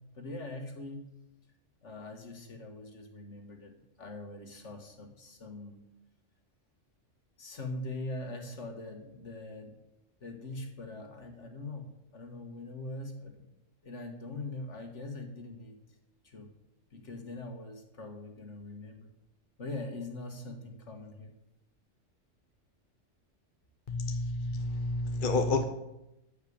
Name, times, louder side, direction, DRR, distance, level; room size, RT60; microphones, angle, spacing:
voice 1, 0.1-1.1 1.8-5.9 7.4-9.8 10.2-13.4 13.8-15.8 16.2-16.5 16.9-19.1 19.6-21.3, left 2 dB, 65° left, 4 dB, 2.2 m, -42 dB
voice 2, 23.9-25.6, left 2 dB, 45° left, 6 dB, 1.1 m, -30 dB
14.0 x 5.6 x 8.8 m, 0.89 s
omnidirectional pair, 1.3 m